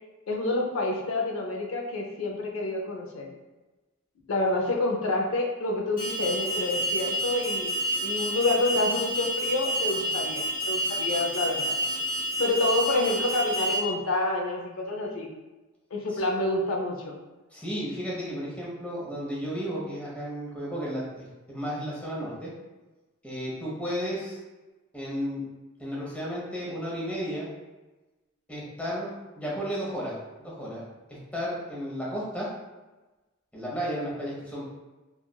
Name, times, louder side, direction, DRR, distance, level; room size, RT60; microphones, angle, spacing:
voice 1, 0.3-3.3 4.3-7.7 8.0-11.8 12.4-15.3 15.9-17.1, left 2 dB, 70° left, 1 dB, 0.5 m, -28 dB
Alarm, 6.0-13.8, right 1 dB, 40° left, 1.1 m, -29 dB
voice 2, 17.5-22.5 23.2-24.4 24.9-25.4 25.8-27.5 28.5-32.5 33.5-34.7, equal, 5° left, -6 dB, 0.7 m, -33 dB
3.0 x 2.4 x 2.3 m, 1.1 s
head